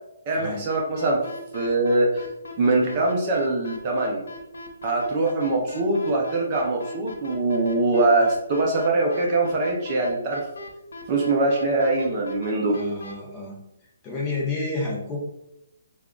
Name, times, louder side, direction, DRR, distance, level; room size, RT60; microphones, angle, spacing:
voice 1, 0.3-1.2 1.5-2.2 2.6-4.2 4.8-10.5 11.1-12.8, right 2 dB, 25° right, -1 dB, 0.5 m, -23 dB
sound 1, 0.7-13.1, left 3 dB, 90° left, 0.8 m, -39 dB
voice 2, 12.7-13.6 14.0-15.2, left 3 dB, 15° left, -2 dB, 0.7 m, -30 dB
3.4 x 2.3 x 3.6 m, 0.84 s
hypercardioid pair, 170°, 0 cm